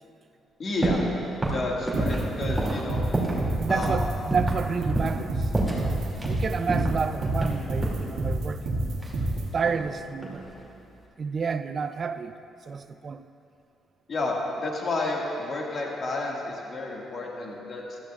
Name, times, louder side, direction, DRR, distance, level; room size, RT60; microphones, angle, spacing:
voice 1, 0.6-1.0 1.5-3.1 3.7-4.0 14.1-18.0, left 2 dB, 50° left, -2 dB, 2.0 m, -30 dB
sound 1, 0.8-1.1 1.4-3.4 3.7-3.9 4.3-4.6 5.0-5.2 5.5-6.4 6.7-8.0 9.0-9.9 10.2-10.6, right 2 dB, 5° right, 2.6 m, -29 dB
sound 2, 1.9-9.4, right 2 dB, 90° right, 2.0 m, -27 dB
voice 2, 3.6-6.0 6.3-9.0 9.5-10.4 11.2-12.4 12.7-13.2, right 5 dB, 45° right, 11 dB, 0.5 m, -30 dB
15.0 x 13.0 x 2.5 m, 2.7 s
cardioid pair, 90°, 0 cm